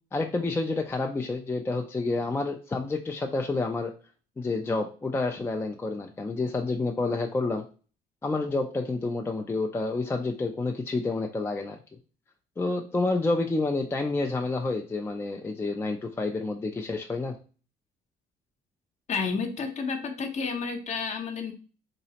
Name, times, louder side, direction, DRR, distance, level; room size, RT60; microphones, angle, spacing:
voice 1, 0.1-3.9 4.4-7.6 8.2-11.8 12.6-17.4, left 3 dB, 15° left, 3 dB, 0.4 m, -29 dB
voice 2, 19.1-21.5, left 5 dB, 40° left, 5 dB, 0.8 m, -31 dB
3.9 x 3.0 x 2.8 m, 0.36 s
cardioid pair, 110°, 17 cm